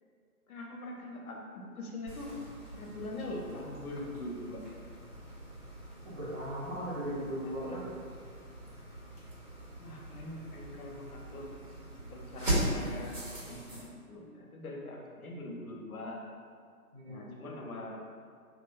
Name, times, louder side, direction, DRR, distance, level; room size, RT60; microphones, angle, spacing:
voice 1, 0.5-2.3 2.7-4.6 7.4-8.0 9.8-11.5 12.1-16.2 17.0-17.9, left 1 dB, 65° left, -1 dB, 0.5 m, -43 dB
sound 1, 2.1-13.8, right 1 dB, 85° right, 1.3 m, -40 dB
voice 2, 6.0-7.8 16.9-17.3, equal, 45° right, -7 dB, 0.6 m, -38 dB
2.4 x 2.2 x 2.3 m, 2.1 s
figure-of-eight pair, 145°, 46 cm